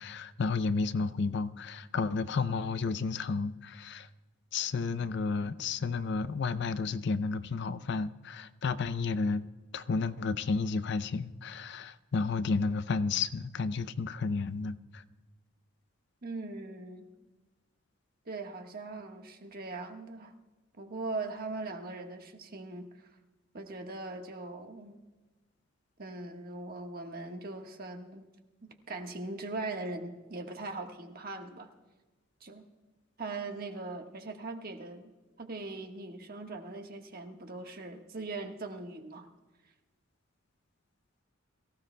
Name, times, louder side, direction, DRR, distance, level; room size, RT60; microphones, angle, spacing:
voice 1, 0.0-4.1 4.5-9.4 9.7-15.0, left 4 dB, 60° left, 13 dB, 0.5 m, -32 dB
voice 2, 16.2-17.1 18.2-20.3 20.7-23.1 23.5-25.0 26.0-28.2 28.6-31.7 32.4-32.7 33.2-35.1 35.4-39.3, right 3 dB, 45° right, 3 dB, 1.4 m, -40 dB
23.0 x 15.5 x 2.2 m, 1.2 s
head